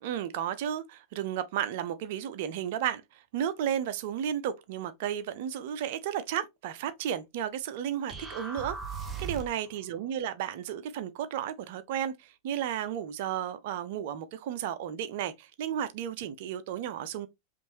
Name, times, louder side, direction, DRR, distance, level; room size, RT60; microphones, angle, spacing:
voice 1, 0.0-8.8 9.2-17.3, right 10 dB, 50° right, 0.5 m, -33 dB
sound 1, 8.1-9.7, right 5 dB, 20° right, 0.9 m, -38 dB
5.3 x 2.6 x 3.0 m
figure-of-eight pair, 90°, 0 cm